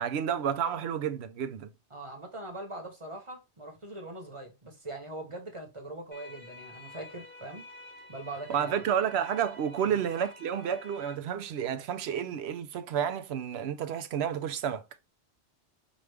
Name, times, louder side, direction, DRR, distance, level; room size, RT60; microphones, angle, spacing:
voice 1, 0.0-1.7 8.5-14.8, right 8 dB, 70° right, 0.8 m, -30 dB
voice 2, 1.9-7.7 8.1-8.9 9.8-10.0, right 2 dB, 30° right, 1.0 m, -42 dB
sound 1, 6.1-11.1, left 2 dB, 40° left, 1.7 m, -49 dB
5.0 x 2.4 x 3.2 m
omnidirectional pair, 1.2 m